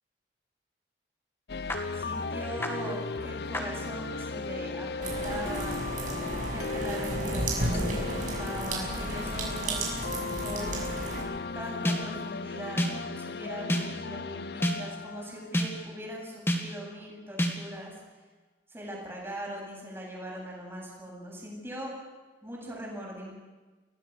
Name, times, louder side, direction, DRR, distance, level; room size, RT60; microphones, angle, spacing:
sound 1, 1.5-16.3, left 4 dB, 60° left, 0.7 m, -36 dB
sound 2, 1.7-1.8 2.6-2.7 3.5-3.6 11.8-12.3 12.8-13.2 13.7-14.1 14.6-15.0 15.5-16.0 16.5-16.9 17.4-17.8, equal, 15° left, 2.3 m, -30 dB
voice 1, 1.9-5.9 6.3-10.1 10.4-10.9 11.5-18.2 18.7-21.9 22.4-23.3, right 1 dB, 15° right, -2 dB, 8.0 m, -41 dB
sound 3, 5.0-11.2, right 2 dB, 45° right, 6.7 m, -33 dB
29.5 x 19.5 x 6.8 m, 1.2 s
head